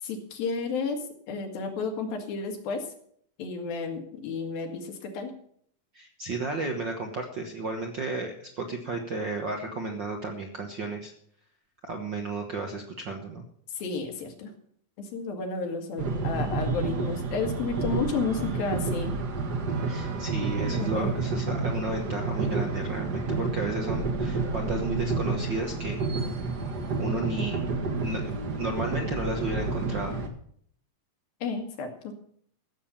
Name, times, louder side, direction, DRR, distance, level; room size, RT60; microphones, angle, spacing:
voice 1, 0.0-2.9 3.4-5.3 13.7-14.5 15.0-19.1 20.7-21.1 27.4-27.5 31.4-32.1, left 4 dB, 80° left, 4 dB, 3.7 m, -32 dB
voice 2, 5.9-11.1 11.8-13.4 19.9-26.0 27.0-27.6 28.0-30.1, right 2 dB, 70° right, 3 dB, 1.1 m, -33 dB
sound 1, 16.0-30.3, right 3 dB, 45° right, 1.4 m, -30 dB
15.0 x 7.4 x 7.1 m, 0.64 s
omnidirectional pair, 4.1 m